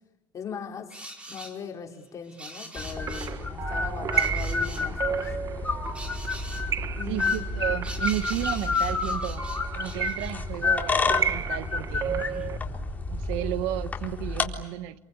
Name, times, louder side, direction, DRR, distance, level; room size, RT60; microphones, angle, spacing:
voice 1, 0.3-5.7 6.9-7.4, left 6 dB, 35° left, 1 dB, 4.9 m, -40 dB
sound 1, 0.9-1.6 2.2-3.4 4.1-4.9 5.9-6.7 7.2-10.3 10.9-11.0 11.2-12.5 13.7-13.8 14.4-14.5, right 1 dB, 15° right, 4.7 m, -43 dB
sound 2, 2.8-14.5, left 3 dB, 20° left, 4.0 m, -30 dB
sound 3, 2.8-12.6, right 8 dB, 40° right, 1.0 m, -33 dB
voice 2, 7.1-9.4 9.7-12.1 13.1-15.0, right 13 dB, 80° right, 12 dB, 1.4 m, -33 dB
28.5 x 23.5 x 8.6 m, 0.96 s
cardioid pair, 120°, 9 cm